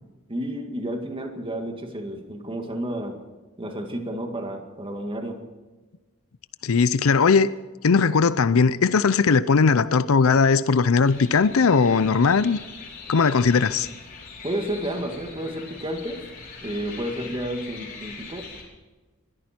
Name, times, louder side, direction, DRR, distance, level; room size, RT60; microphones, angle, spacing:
voice 1, 0.3-3.2 3.6-5.4 14.4-16.2 16.6-18.5, right 1 dB, 25° right, 2.0 m, -31 dB
voice 2, 6.6-7.5 7.8-12.6 13.1-13.9, left 5 dB, 80° left, 0.6 m, -19 dB
sound 1, 11.0-18.6, left 4 dB, 45° left, 4.4 m, -42 dB
22.0 x 14.0 x 4.5 m
head